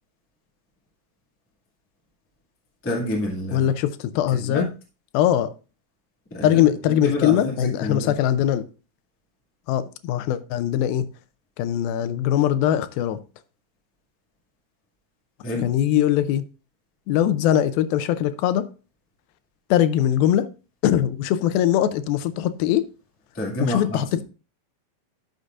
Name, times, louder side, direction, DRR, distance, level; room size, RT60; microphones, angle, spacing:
voice 1, 2.8-3.7 4.4-4.7 6.3-6.6 7.0-8.1 15.4-15.7 23.3-24.0, left 1 dB, 10° left, 0.7 m, -28 dB
voice 2, 3.5-4.7 5.1-5.5 6.4-8.7 9.7-11.1 11.6-13.2 15.6-16.5 17.1-18.7 19.7-20.5 20.8-22.9 23.6-24.2, left 11 dB, 85° left, 2.4 m, -21 dB
11.5 x 6.7 x 2.4 m
omnidirectional pair, 4.2 m